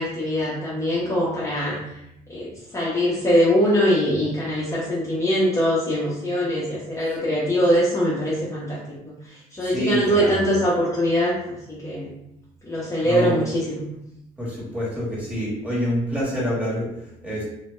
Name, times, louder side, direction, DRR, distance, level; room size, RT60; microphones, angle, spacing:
voice 1, 0.0-2.0 2.3-12.1 12.6-13.8, equal, 15° left, -8 dB, 0.6 m, -22 dB
voice 2, 9.6-10.4 13.0-13.4 14.4-17.4, left 1 dB, 10° right, -7 dB, 1.1 m, -27 dB
2.1 x 2.1 x 3.0 m, 0.83 s
cardioid pair, 110°, 17 cm